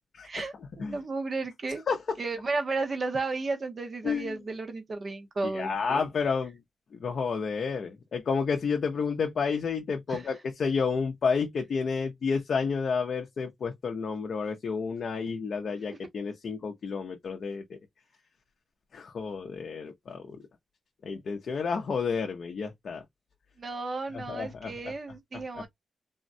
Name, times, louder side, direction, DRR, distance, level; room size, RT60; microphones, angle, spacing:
voice 1, 0.2-1.8 2.2-6.1 10.1-10.3 15.9-16.0 23.6-25.7, right 3 dB, 35° right, 0.7 m, -33 dB
voice 2, 4.0-4.4 5.4-6.6 6.9-17.8 18.9-20.4 21.0-23.0 24.1-24.9, left 5 dB, 55° left, 0.5 m, -30 dB
3.5 x 2.1 x 2.5 m
wide cardioid pair, 175°, 0 cm